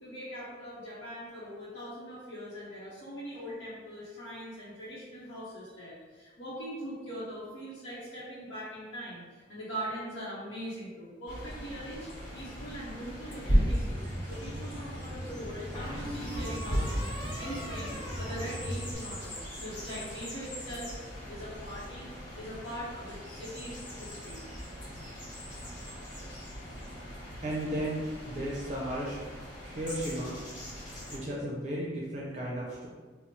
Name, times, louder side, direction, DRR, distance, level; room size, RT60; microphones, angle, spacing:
voice 1, 0.0-17.0 17.4-20.9 21.3-22.1 22.3-24.4, equal, 80° left, -9 dB, 0.8 m, -41 dB
sound 1, 11.3-31.2, equal, 45° left, 1.3 m, -37 dB
sound 2, 13.0-13.8 15.7-19.4, equal, 25° left, 0.5 m, -42 dB
sound 3, 13.9-18.9, equal, 10° left, 0.9 m, -41 dB
voice 2, 27.4-29.2 29.6-30.3 31.1-32.9, right 1 dB, 40° right, -5 dB, 0.6 m, -34 dB
3.0 x 2.0 x 4.0 m, 1.4 s
head